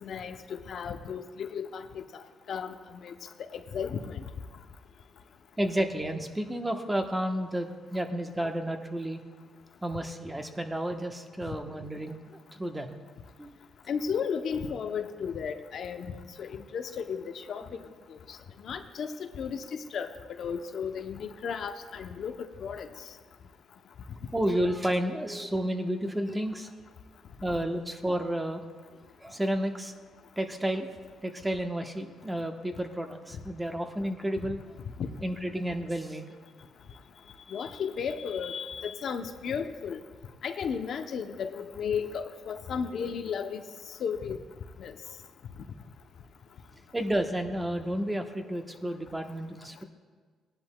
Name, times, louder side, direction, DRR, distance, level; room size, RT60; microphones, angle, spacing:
voice 1, 0.0-2.2 2.5-4.3 13.9-17.8 18.1-18.4 18.6-20.1 20.4-22.9 34.4-34.6 35.0-35.1 37.5-40.0 40.4-43.6 44.0-44.4 44.8-44.9, left 6 dB, 60° left, 7 dB, 0.7 m, -34 dB
voice 2, 5.6-9.2 9.8-13.0 13.4-13.5 17.6-17.7 24.3-26.7 27.4-28.6 29.2-29.9 30.4-30.9 31.2-34.7 35.2-36.3 46.9-49.8, right 1 dB, 15° right, 5 dB, 1.0 m, -31 dB
18.0 x 10.5 x 2.2 m, 1.5 s
cardioid pair, 90°, 0 cm